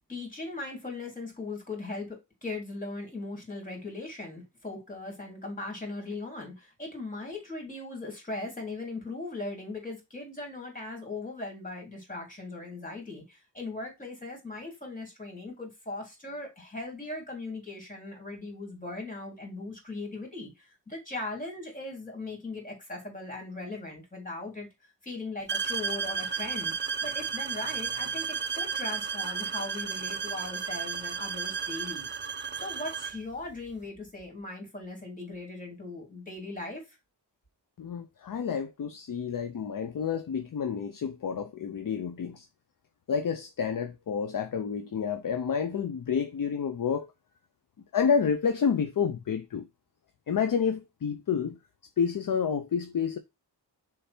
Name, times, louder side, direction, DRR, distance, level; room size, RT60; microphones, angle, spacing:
voice 1, 0.1-24.7 25.0-26.7 27.0-32.1 32.5-37.0, left 2 dB, 20° left, 3.1 m, -39 dB
sound 1, 25.5-33.2, right 6 dB, 30° right, 0.4 m, -33 dB
voice 2, 37.8-42.5 43.1-47.1 47.9-49.7 50.3-51.6 52.0-53.2, left 6 dB, 50° left, 0.6 m, -29 dB
6.6 x 3.4 x 4.3 m
wide cardioid pair, 120°, 43 cm